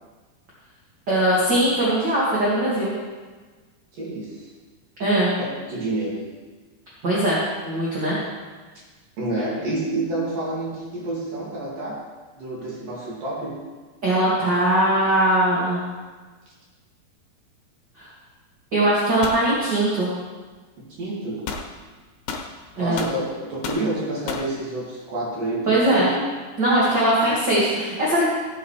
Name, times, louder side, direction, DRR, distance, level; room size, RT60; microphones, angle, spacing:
voice 1, 1.1-2.9 5.0-5.3 7.0-8.2 14.0-15.8 18.0-18.1 18.7-20.1 22.8-23.0 25.7-26.1 26.6-28.2, right 1 dB, 35° right, -8 dB, 2.1 m, -20 dB
voice 2, 3.9-4.5 5.4-6.3 9.2-12.1 12.4-13.6 21.0-21.5 22.8-26.1, right 2 dB, 55° right, -6 dB, 4.0 m, -28 dB
sound 1, 19.2-19.5 21.5-21.7 22.3-23.2 23.6-23.9 24.3-24.5, left 5 dB, 70° left, 2.5 m, -31 dB
17.0 x 8.1 x 3.4 m, 1.3 s
omnidirectional pair, 4.8 m